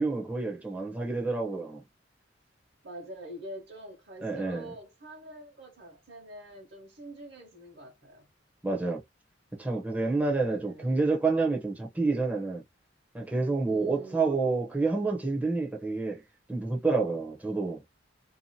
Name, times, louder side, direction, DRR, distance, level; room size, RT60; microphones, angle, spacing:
voice 1, 0.0-1.8 4.2-4.7 8.6-9.0 9.6-12.6 13.1-16.2 16.5-17.8, right 3 dB, 10° right, 0.7 m, -28 dB
voice 2, 2.8-8.3 10.3-11.0 13.7-14.4, right 1 dB, 60° right, 1.0 m, -45 dB
2.7 x 2.4 x 2.7 m
head